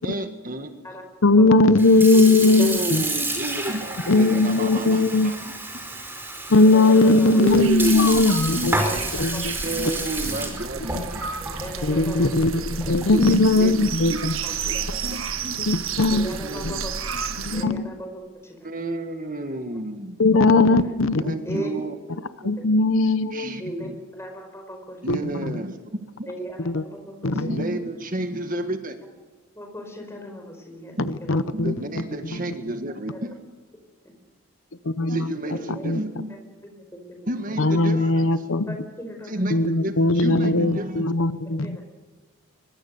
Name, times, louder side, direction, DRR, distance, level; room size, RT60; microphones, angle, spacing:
voice 1, 0.0-0.7 2.6-5.8 7.3-8.7 9.6-11.2 12.9-14.2 14.7-15.6 16.4-16.8 17.1-17.2 18.6-20.2 21.2-22.0 22.4-22.5 23.3-24.0 25.0-26.3 27.3-29.0 31.5-33.4 35.1-36.3 37.3-38.4 39.2-41.1, right 1 dB, 35° right, 7 dB, 1.6 m, -30 dB
voice 2, 1.2-3.0 4.1-5.3 6.5-8.8 9.2-9.6 11.8-14.3 15.7-16.3 17.4-17.8 20.2-21.6 22.4-23.5 25.1-25.5 26.6-26.8 27.2-27.6 31.3-31.7 34.9-35.3 35.7-36.0 37.6-38.7 39.5-41.8, left 2 dB, 60° left, 13 dB, 0.7 m, -19 dB
Sink (filling or washing) / Fill (with liquid), 1.6-13.2, right 2 dB, 10° right, 5.1 m, -31 dB
voice 3, 2.4-2.8 6.6-7.4 8.8-9.4 11.6-12.4 12.8-12.9 14.4-14.5 16.1-16.9 17.5-18.7 20.5-20.9 21.4-21.8 23.6-25.0 26.3-27.4 29.5-30.9 31.3-31.5 35.5-35.8 36.3-37.2 38.7-39.4 41.6-41.8, equal, 10° left, 3 dB, 5.0 m, -37 dB
sound 1, 7.5-17.6, right 6 dB, 65° right, 1.6 m, -32 dB
23.5 x 23.0 x 6.8 m, 1.4 s
head